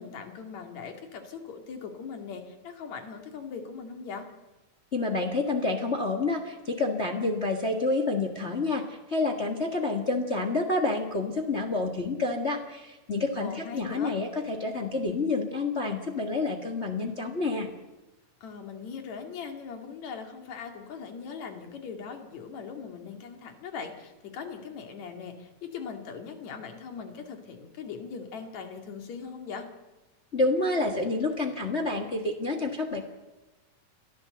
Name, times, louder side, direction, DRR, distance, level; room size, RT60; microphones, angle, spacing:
voice 1, 0.0-4.3 13.4-14.2 18.4-29.7, left 6 dB, 65° left, 5 dB, 3.4 m, -40 dB
voice 2, 4.9-17.7 30.3-33.0, left 3 dB, 30° left, 4 dB, 1.4 m, -28 dB
30.0 x 12.0 x 7.9 m, 1.1 s
omnidirectional pair, 3.4 m